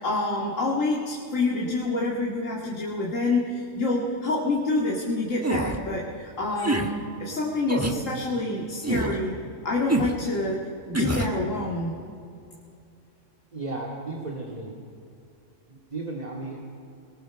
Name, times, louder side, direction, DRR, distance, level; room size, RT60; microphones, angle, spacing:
voice 1, 0.0-9.4 9.6-11.9, left 2 dB, 80° left, -2 dB, 2.6 m, -27 dB
sound 1, 5.4-5.8 6.6-6.9 7.7-8.0 8.8-9.2 9.9-10.2 10.9-11.3, right 2 dB, 10° right, 1.3 m, -26 dB
voice 2, 13.5-14.7 15.7-16.6, right 2 dB, 30° right, -2 dB, 2.5 m, -34 dB
26.5 x 20.0 x 6.5 m, 2.6 s
omnidirectional pair, 1.3 m